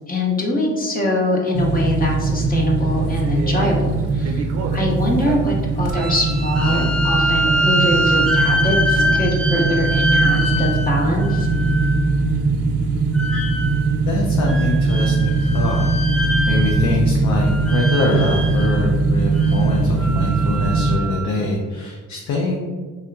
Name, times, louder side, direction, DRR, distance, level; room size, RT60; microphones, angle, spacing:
voice 1, 0.1-4.5 4.7-11.5, left 1 dB, 30° left, -1 dB, 0.8 m, -23 dB
sound 1, 1.5-21.0, right 3 dB, 55° right, 0.5 m, -20 dB
sound 2, 5.9-12.1 13.1-14.0 14.5-17.1 17.3-18.8 19.3-21.4, equal, 5° left, 0.5 m, -24 dB
voice 2, 14.1-15.9 16.2-22.6, left 2 dB, 70° left, -1 dB, 0.6 m, -24 dB
3.4 x 2.8 x 2.3 m, 1.4 s
cardioid pair, 90°, 30 cm